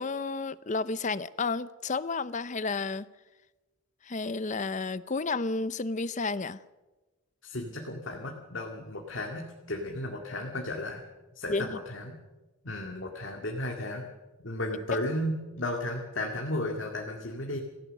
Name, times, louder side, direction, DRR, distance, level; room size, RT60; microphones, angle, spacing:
voice 1, 0.0-3.1 4.1-6.6 11.5-11.8, left 3 dB, 35° left, 0.6 m, -31 dB
voice 2, 7.4-11.0 11.3-12.2 12.6-14.0 14.4-17.6, left 1 dB, 60° left, 2.1 m, -34 dB
27.0 x 15.5 x 6.5 m
head